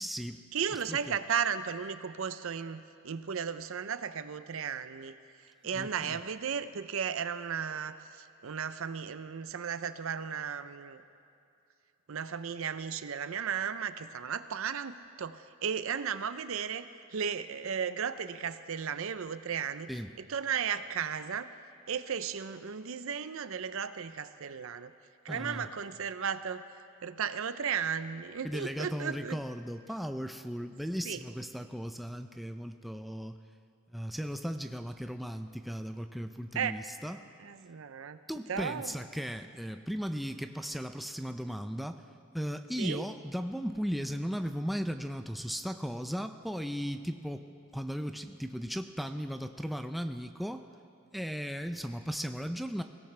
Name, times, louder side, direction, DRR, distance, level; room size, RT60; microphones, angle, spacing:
voice 1, 0.0-0.4 0.9-1.2 5.6-6.2 19.9-20.1 25.3-25.7 28.4-33.4 33.9-37.2 38.3-42.0 42.3-47.4 47.7-50.7 51.1-52.8, equal, ahead, 7 dB, 0.4 m, -36 dB
voice 2, 0.5-5.1 5.6-8.0 8.4-11.0 12.1-19.9 20.2-21.5 21.9-24.9 25.2-26.6 27.0-29.4 31.0-31.2 36.5-36.7 37.4-38.2 38.5-38.9 42.8-43.0, right 7 dB, 65° right, 12 dB, 0.5 m, -35 dB
22.5 x 17.0 x 3.3 m, 2.6 s
head